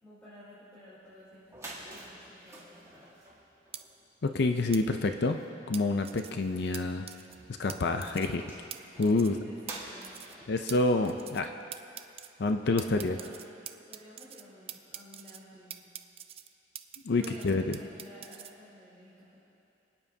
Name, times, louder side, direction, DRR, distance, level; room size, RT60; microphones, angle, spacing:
voice 1, 0.0-3.2 8.0-8.1 9.0-10.4 12.6-13.4 13.9-15.9 17.2-19.4, left 1 dB, 10° left, -12 dB, 3.5 m, -52 dB
sound 1, 1.1-1.2 1.4-12.2, right 2 dB, 15° right, 1.7 m, -50 dB
sound 2, 3.7-3.8 4.7-4.8 5.7-6.3 6.7-6.8 7.1-7.4 7.7-7.8 8.0-8.4 8.7-8.8 9.0-9.4 9.7-9.8 10.0-10.4 10.7-10.8 11.0-11.5 11.7-12.3 12.8-14.4 14.7-15.4 15.7-17.0 17.2-18.5, right 10 dB, 30° right, 0.4 m, -43 dB
voice 2, 4.2-5.4 5.7-7.1 7.6-8.4 9.0-9.4 10.5-11.5 12.4-13.2 17.0-17.6, left 3 dB, 60° left, 6 dB, 0.5 m, -27 dB
26.0 x 9.4 x 2.8 m, 2.8 s
head